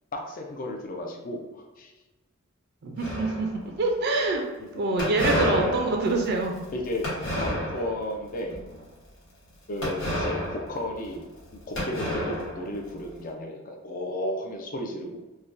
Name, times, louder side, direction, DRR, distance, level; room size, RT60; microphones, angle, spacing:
voice 1, 0.1-1.9 4.6-4.9 5.6-5.8 6.7-7.1 7.4-7.5 7.7-8.6 9.7-11.2 11.7-15.2, left 1 dB, 40° left, 1 dB, 0.4 m, -33 dB
voice 2, 2.8-3.5 3.8-4.4 4.7-6.5, right 2 dB, 50° right, 2 dB, 0.4 m, -25 dB
sound 1, 3.0-3.8 5.0-8.1 8.5-8.8 9.8-11.4 11.8-13.1, left 1 dB, 60° left, 1.0 m, -30 dB
3.3 x 2.2 x 2.5 m, 1.1 s
head